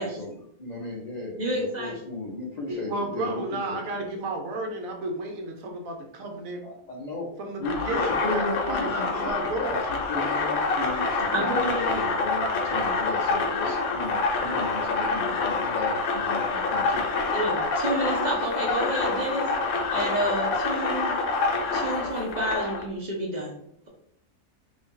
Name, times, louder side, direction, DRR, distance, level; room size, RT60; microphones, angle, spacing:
voice 1, 0.0-4.1 6.6-7.3 7.6-9.3 9.7-17.1, left 2 dB, 85° left, -3 dB, 0.3 m, -35 dB
voice 2, 1.4-2.0 11.3-12.1 16.6-16.7 17.3-19.5 19.9-21.1 21.7-23.5, right 1 dB, 50° right, -3 dB, 0.5 m, -29 dB
voice 3, 2.7-6.6 7.4-9.8, right 2 dB, 70° right, 3 dB, 1.0 m, -32 dB
sound 1, 7.6-22.8, left 3 dB, 70° left, 1.1 m, -27 dB
2.8 x 2.7 x 3.6 m, 0.70 s
omnidirectional pair, 1.6 m